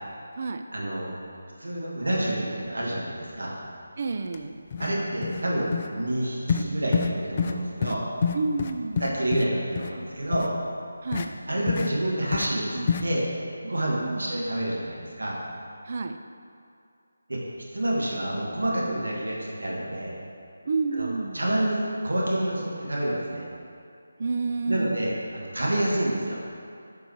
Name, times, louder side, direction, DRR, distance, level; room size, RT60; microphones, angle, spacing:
voice 1, 0.7-1.1 1.6-3.5 4.8-8.0 9.0-10.5 11.5-13.3 13.6-15.4 17.3-17.5 17.7-20.2 20.9-21.1 21.3-23.5 24.7-26.4, right 1 dB, 75° right, -4 dB, 2.0 m, -28 dB
voice 2, 4.0-4.6 8.3-9.1 11.0-11.3 14.0-14.4 15.9-16.2 20.7-21.4 24.2-25.0, right 3 dB, 45° right, 7 dB, 0.4 m, -29 dB
sound 1, 4.3-4.4 4.7-4.9 5.2-5.4 5.7-5.9 6.5-6.7 6.9-7.1 7.4-7.6 7.8-7.9 8.2-9.4 9.8-9.9 10.3-10.5 11.1-11.3 11.7-11.9 12.3-12.5 12.9-13.0, left 6 dB, 30° left, 0.4 m, -26 dB
9.1 x 5.3 x 4.7 m, 2.5 s
figure-of-eight pair, 160°, 0 cm